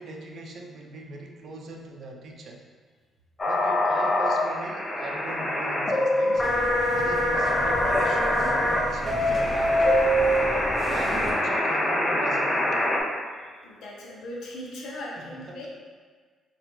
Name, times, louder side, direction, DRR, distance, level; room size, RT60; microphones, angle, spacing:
voice 1, 0.0-2.6 3.4-6.5 6.9-9.8 10.9-12.9 15.3-15.6, right 3 dB, 60° right, 1 dB, 0.4 m, -39 dB
sound 1, 3.4-13.0, left 1 dB, 25° left, 0.5 m, -25 dB
sound 2, 6.4-11.3, right 1 dB, 15° right, 0.8 m, -27 dB
voice 2, 13.4-15.7, left 1 dB, 80° left, -3 dB, 0.7 m, -39 dB
3.9 x 2.4 x 3.0 m, 1.5 s
cardioid pair, 90°, 0 cm